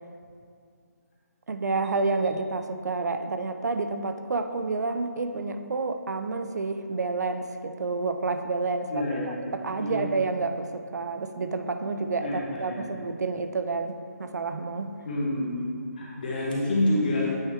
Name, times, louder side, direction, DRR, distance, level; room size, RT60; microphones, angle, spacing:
voice 1, 1.5-14.9, right 3 dB, 75° right, 8 dB, 0.5 m, -29 dB
voice 2, 8.9-9.3 9.8-10.0 12.2-12.9 15.0-15.7 16.0-17.3, left 1 dB, 30° left, -4 dB, 1.2 m, -27 dB
8.5 x 4.7 x 3.2 m, 2.3 s
hypercardioid pair, 170°, 9 cm